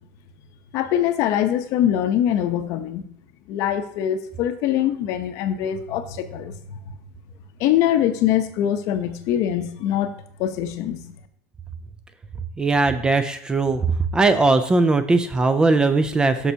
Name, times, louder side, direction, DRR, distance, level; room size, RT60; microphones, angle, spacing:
voice 1, 0.7-3.1 3.5-6.8 7.6-10.1 10.4-11.1, left 11 dB, 50° left, 10 dB, 0.7 m, -23 dB
voice 2, 12.6-13.8 14.1-16.5, right 3 dB, 10° right, 10 dB, 0.3 m, -19 dB
12.5 x 5.5 x 2.7 m, 0.67 s
cardioid pair, 170°, 7 cm